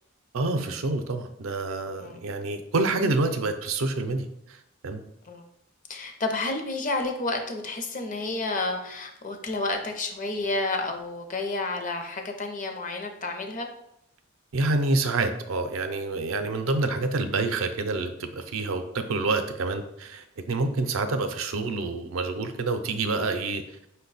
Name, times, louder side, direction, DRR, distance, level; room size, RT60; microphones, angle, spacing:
voice 1, 0.3-4.3 4.8-5.0 14.5-23.6, right 3 dB, 80° right, 7 dB, 0.5 m, -27 dB
voice 2, 5.9-13.7, left 2 dB, 40° left, 4 dB, 0.6 m, -30 dB
5.2 x 2.2 x 4.0 m, 0.78 s
head